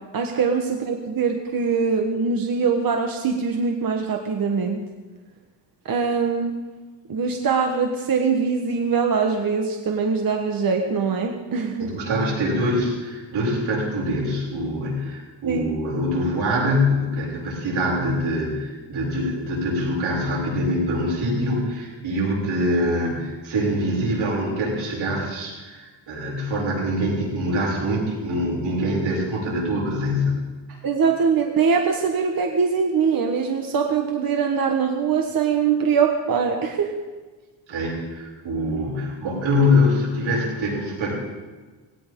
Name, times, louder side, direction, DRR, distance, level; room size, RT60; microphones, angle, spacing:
voice 1, 0.1-4.8 5.8-6.6 7.1-11.9 15.5-15.7 30.8-37.0, right 5 dB, 50° right, 3 dB, 1.4 m, -22 dB
voice 2, 11.8-30.4 30.7-30.8 37.7-41.1, left 1 dB, 90° right, -4 dB, 6.9 m, -24 dB
19.0 x 17.5 x 3.8 m, 1.3 s
wide cardioid pair, 135°, 44 cm